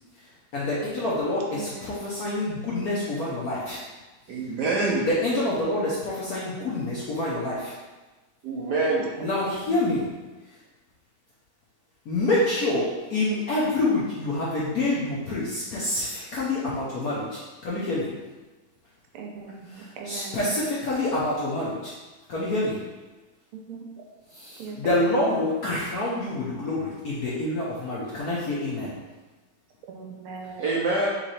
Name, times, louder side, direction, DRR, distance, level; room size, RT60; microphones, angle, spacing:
voice 1, 0.5-3.8 5.1-7.8 9.2-10.1 12.1-18.2 20.1-21.9 22.3-22.9 24.4-29.0, left 2 dB, 65° left, -7 dB, 0.9 m, -27 dB
voice 2, 1.5-2.1 5.3-6.1 9.2-9.8 19.1-20.5 23.5-23.8 24.6-24.8 25.0-25.4 29.9-30.6, right 5 dB, 90° right, 1 dB, 1.6 m, -40 dB
voice 3, 4.3-5.1 8.4-9.1 30.6-31.1, right 3 dB, 75° right, -4 dB, 0.9 m, -25 dB
3.8 x 3.1 x 4.1 m, 1.2 s
omnidirectional pair, 2.4 m